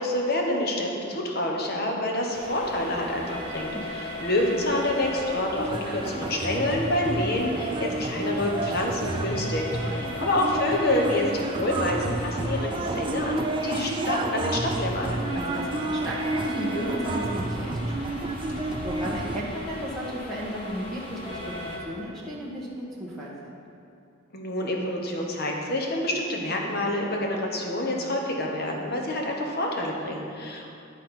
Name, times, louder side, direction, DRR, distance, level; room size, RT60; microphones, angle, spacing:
voice 1, 0.0-9.6 9.9-15.2 24.3-30.7, left 1 dB, 50° left, 0 dB, 1.1 m, -27 dB
sound 1, 2.3-21.8, left 1 dB, 25° left, 1.1 m, -38 dB
voice 2, 3.6-4.0 10.1-10.3 15.3-18.3 18.8-23.5, equal, ahead, -7 dB, 1.3 m, -35 dB
sound 2, 5.6-19.4, right 2 dB, 25° right, 0.3 m, -31 dB
sound 3, 14.6-21.1, left 1 dB, 75° left, 1.0 m, -46 dB
10.5 x 4.3 x 5.6 m, 2.5 s
head